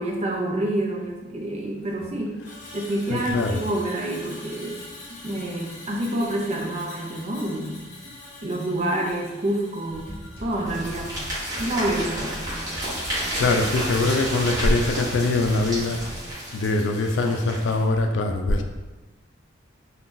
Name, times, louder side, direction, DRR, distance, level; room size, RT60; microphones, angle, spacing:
voice 1, 0.0-2.4 2.7-4.8 5.2-7.8 8.4-11.1 11.6-12.4 13.4-13.6, right 1 dB, 35° right, -1 dB, 0.5 m, -28 dB
Screech, 2.4-12.8 13.1-13.4, left 2 dB, 45° left, 0.6 m, -44 dB
voice 2, 3.1-3.6 13.3-16.0 16.5-18.6, left 2 dB, 85° left, 5 dB, 0.4 m, -22 dB
sound 1, 9.9-16.3, equal, 15° left, 1.1 m, -39 dB
sound 2, 10.7-17.8, equal, 20° right, 1.1 m, -31 dB
2.5 x 2.3 x 3.7 m, 1.2 s
head